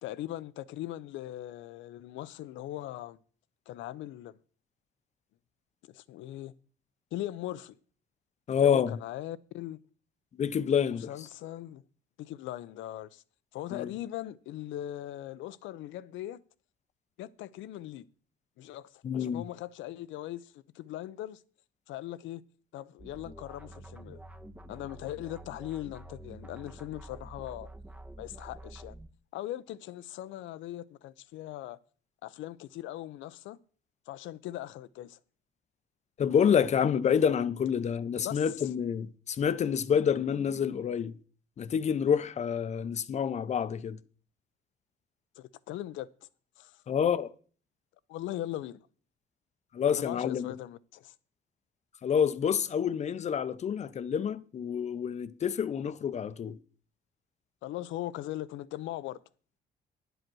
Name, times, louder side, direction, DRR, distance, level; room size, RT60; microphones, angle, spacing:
voice 1, 0.0-3.2 3.7-4.4 5.8-6.5 7.1-7.7 8.5-9.8 11.1-11.8 12.2-13.2 13.5-16.4 17.2-18.0 18.6-21.4 21.9-22.4 22.7-24.2 24.7-27.7 28.2-29.0 29.3-31.8 32.2-33.6 34.1-35.2 38.2-38.4 45.4-46.1 46.6-46.8 48.1-48.9 49.9-51.1 57.6-59.2, left 14 dB, 85° left, 0.6 m, -40 dB
voice 2, 8.5-9.0 10.4-11.1 13.7-13.9 19.0-19.5 36.2-41.2 41.6-44.0 46.9-47.3 49.7-50.5 52.0-56.6, left 7 dB, 35° left, 0.6 m, -28 dB
sound 1, 23.0-29.1, right 1 dB, 10° right, 0.6 m, -48 dB
10.5 x 8.0 x 6.2 m
cardioid pair, 140°, 19 cm